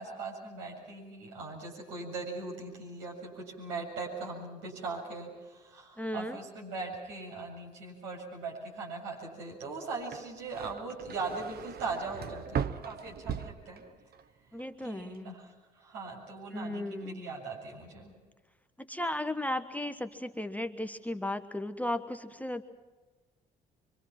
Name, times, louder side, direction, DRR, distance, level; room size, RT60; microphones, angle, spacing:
voice 1, 0.0-13.8 14.8-15.4 15.8-18.1, right 3 dB, 75° right, -2 dB, 7.5 m, -40 dB
voice 2, 6.0-6.4 14.5-15.3 16.5-17.2 18.8-22.6, left 1 dB, 5° left, 8 dB, 1.2 m, -35 dB
sound 1, 10.0-14.3 14.6-15.2, right 8 dB, 50° right, 1.0 m, -38 dB
25.0 x 24.5 x 6.0 m, 1.3 s
hypercardioid pair, 50°, 21 cm